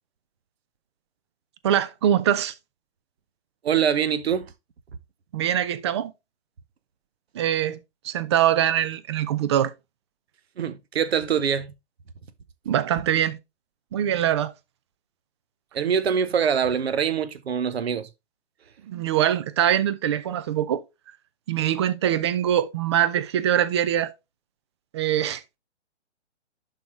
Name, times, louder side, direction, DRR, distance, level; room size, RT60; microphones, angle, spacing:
voice 1, 1.6-2.5 5.3-6.1 7.3-9.7 12.7-13.4 13.9-14.5 18.8-20.8 21.5-24.1 24.9-25.4, right 10 dB, 25° right, 0.5 m, -23 dB
voice 2, 3.6-4.5 10.6-11.7 15.7-18.1, right 7 dB, 60° right, 0.9 m, -24 dB
11.5 x 4.0 x 3.1 m
figure-of-eight pair, 125°, 35 cm